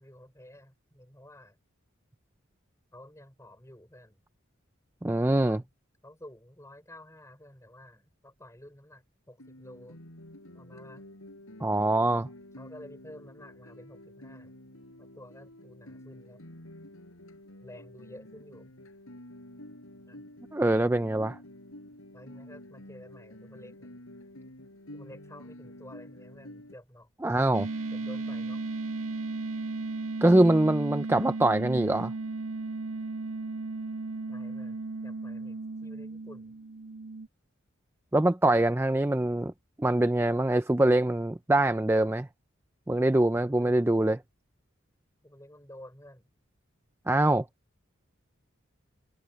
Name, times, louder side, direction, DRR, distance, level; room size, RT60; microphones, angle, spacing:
voice 1, 0.0-1.6 2.9-4.2 5.4-5.7 6.0-10.0 10.5-11.1 12.6-14.5 15.0-16.4 17.6-18.7 20.0-20.2 22.1-23.9 24.9-27.1 27.9-28.6 34.3-36.6 43.5-43.9 45.2-46.3, left 1 dB, 15° left, 4.7 m, -51 dB
voice 2, 5.0-5.6 11.6-12.3 20.5-21.4 27.2-27.7 30.2-32.1 38.1-39.5 39.8-42.3 42.9-44.2 47.1-47.5, right 1 dB, 10° right, 0.4 m, -24 dB
Guitar, 9.4-26.8, left 1 dB, 85° left, 6.1 m, -49 dB
sound 1, 27.5-37.3, right 3 dB, 90° right, 1.9 m, -35 dB
head